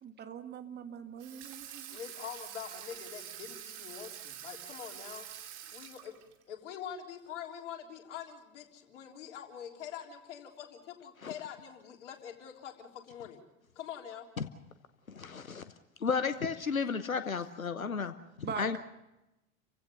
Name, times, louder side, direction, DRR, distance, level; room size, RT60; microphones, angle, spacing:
voice 1, 0.0-2.0 18.4-18.7, right 7 dB, 25° right, 8 dB, 1.6 m, -42 dB
Water tap faucet / Sink (filling or washing), 1.2-6.4, right 10 dB, 45° right, 2.8 m, -46 dB
voice 2, 1.9-5.2 5.7-6.1 6.5-13.4 13.8-14.3, left 9 dB, 60° left, 2 dB, 3.7 m, -45 dB
voice 3, 15.1-15.6 16.0-18.8, left 5 dB, 85° left, 11 dB, 1.0 m, -33 dB
29.5 x 16.0 x 6.8 m, 0.96 s
figure-of-eight pair, 85°, 40 cm